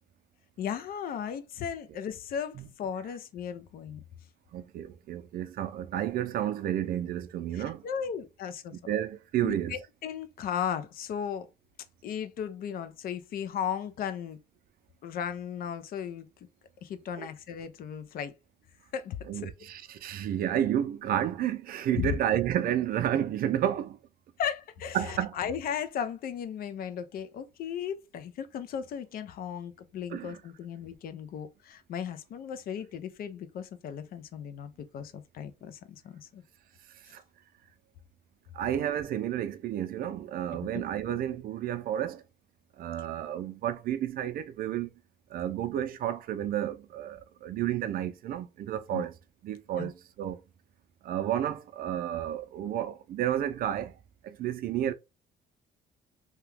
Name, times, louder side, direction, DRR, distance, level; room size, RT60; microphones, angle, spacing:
voice 1, 0.6-4.0 7.5-9.0 9.4-11.5 12.0-14.4 15.0-16.3 16.8-18.3 18.9-19.5 21.9-22.2 24.4-36.4 40.7-40.8 48.9-49.0 49.8-49.9, left 8 dB, 60° left, 0.6 m, -36 dB
voice 2, 4.5-7.8 8.7-9.8 17.2-17.3 19.3-24.0 24.9-25.4 30.1-30.4 37.1-37.2 38.5-42.2 42.8-44.9 45.3-49.1 49.4-50.4 51.0-53.9 54.2-54.9, right 11 dB, 60° right, 0.5 m, -31 dB
2.8 x 2.3 x 3.3 m
cardioid pair, 110°, 17 cm